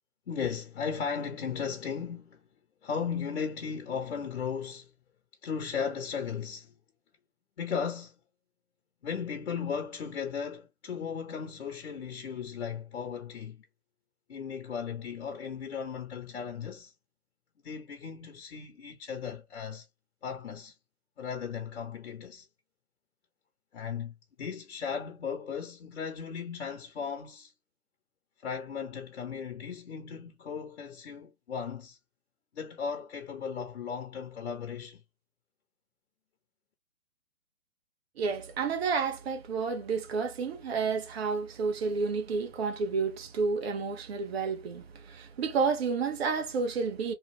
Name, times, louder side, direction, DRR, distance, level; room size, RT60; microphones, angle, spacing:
voice 1, 0.3-2.4 2.8-4.9 5.4-6.7 7.6-8.1 9.0-13.6 14.3-16.9 17.6-19.9 20.2-20.7 21.2-22.5 23.7-27.5 28.4-32.0 32.5-35.0, left 6 dB, 55° left, 1.0 m, -36 dB
voice 2, 38.2-47.1, right 5 dB, 45° right, 1.1 m, -30 dB
3.2 x 2.3 x 3.3 m
figure-of-eight pair, 130°, 42 cm